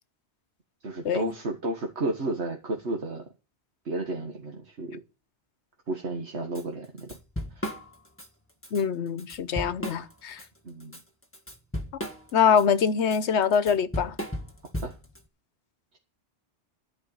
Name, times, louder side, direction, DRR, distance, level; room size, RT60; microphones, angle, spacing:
voice 1, 0.8-3.3 3.9-5.0 5.9-7.2 7.6-7.7 10.6-11.0 14.8-15.0, right 2 dB, 80° right, 2.0 m, -32 dB
Drum kit / Drum, 6.6-6.7 7.0-8.3 8.6-8.8 9.2-10.5 10.8-15.2, equal, 10° left, 1.6 m, -35 dB
voice 2, 8.7-10.4 12.3-14.1, left 7 dB, 80° left, 1.1 m, -24 dB
14.0 x 5.3 x 8.7 m
omnidirectional pair, 1.1 m